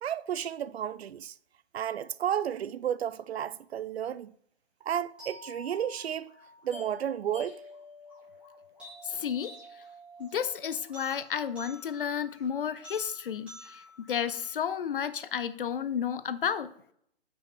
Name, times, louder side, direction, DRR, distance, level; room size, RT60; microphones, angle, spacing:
voice 1, 0.0-1.4 1.7-4.3 4.8-6.3 6.6-7.6, right 9 dB, 80° right, 0.5 m, -32 dB
sound 1, 5.2-15.2, left 1 dB, 5° right, 1.8 m, -49 dB
voice 2, 9.0-9.5 10.2-13.8 14.1-16.7, left 8 dB, 60° left, 0.6 m, -32 dB
5.7 x 5.0 x 4.3 m
hypercardioid pair, 160°, 31 cm